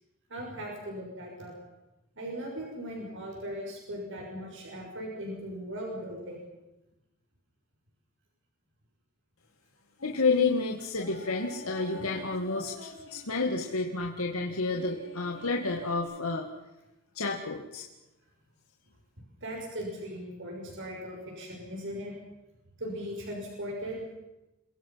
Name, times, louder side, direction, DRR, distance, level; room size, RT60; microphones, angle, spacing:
voice 1, 0.3-1.6 2.2-6.4 19.4-22.1 22.8-24.0, equal, 60° right, 0 dB, 6.5 m, -38 dB
voice 2, 10.0-16.5 17.2-17.8, left 3 dB, 85° left, 0 dB, 2.1 m, -30 dB
sound 1, 10.0-10.3 10.9-13.9 14.7-16.0, left 1 dB, 65° left, 7.2 m, -47 dB
28.5 x 22.5 x 5.8 m, 0.97 s
head